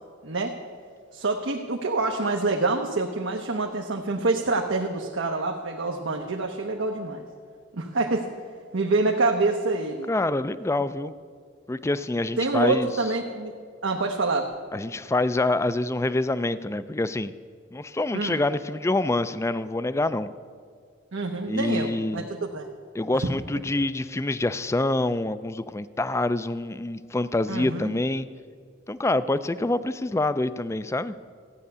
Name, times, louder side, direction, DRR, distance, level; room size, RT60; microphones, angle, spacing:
voice 1, 0.2-0.5 1.1-7.2 7.7-8.3 8.7-10.1 12.4-13.5 13.8-14.5 18.1-18.4 21.1-22.7 27.5-27.9, right 3 dB, 85° right, 2 dB, 0.9 m, -26 dB
voice 2, 10.1-11.1 11.7-12.9 14.7-17.3 17.7-20.3 21.5-22.3 22.9-28.3 28.9-31.1, left 2 dB, 15° left, 14 dB, 0.3 m, -26 dB
14.5 x 9.6 x 6.8 m, 2.1 s
head